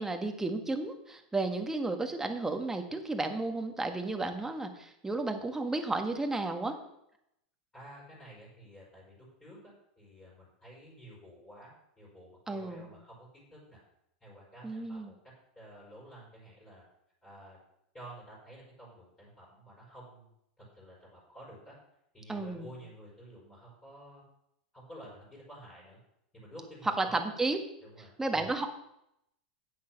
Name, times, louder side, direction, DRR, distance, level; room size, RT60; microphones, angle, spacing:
voice 1, 0.0-6.8 12.5-12.9 14.6-15.1 22.3-22.7 26.8-27.6 28.2-28.7, right 2 dB, 10° right, 5 dB, 1.6 m, -33 dB
voice 2, 7.7-13.8 14.2-15.1 15.6-16.8 17.2-17.6 17.9-20.3 20.6-21.8 22.1-24.2 24.7-26.0 26.3-27.2 27.8-28.1, right 1 dB, 15° left, -5 dB, 5.6 m, -51 dB
9.4 x 8.8 x 6.0 m, 0.80 s
hypercardioid pair, 115°, 5 cm